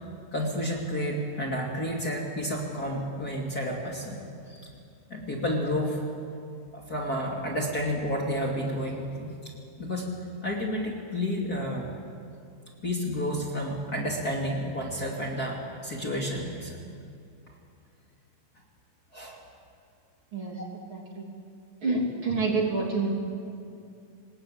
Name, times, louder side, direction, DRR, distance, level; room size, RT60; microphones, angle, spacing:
voice 1, 0.3-4.2 4.5-4.6 5.1-6.0 6.7-9.4 9.8-10.1 10.4-11.9 12.8-16.8 19.1-19.4, equal, 30° left, -2 dB, 2.9 m, -30 dB
voice 2, 20.3-20.6 20.9-21.3 21.8-23.1, right 3 dB, 40° right, -1 dB, 3.4 m, -28 dB
26.5 x 20.5 x 8.8 m, 2.5 s
omnidirectional pair, 4.0 m